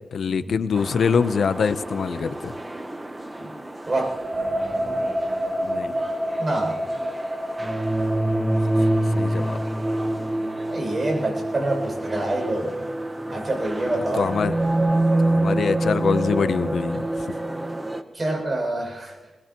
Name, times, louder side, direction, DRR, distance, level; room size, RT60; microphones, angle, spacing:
voice 1, 0.1-2.5 5.6-6.0 9.1-9.6 14.1-14.6 15.2-17.1, left 6 dB, 80° left, 12 dB, 0.7 m, -24 dB
sound 1, 0.7-18.0, right 1 dB, 15° right, 1.1 m, -26 dB
voice 2, 6.4-6.8 10.7-12.7 13.3-14.4 18.1-19.2, right 2 dB, 35° right, 2 dB, 6.4 m, -26 dB
21.5 x 21.0 x 3.0 m, 1.1 s
cardioid pair, 80°, 0 cm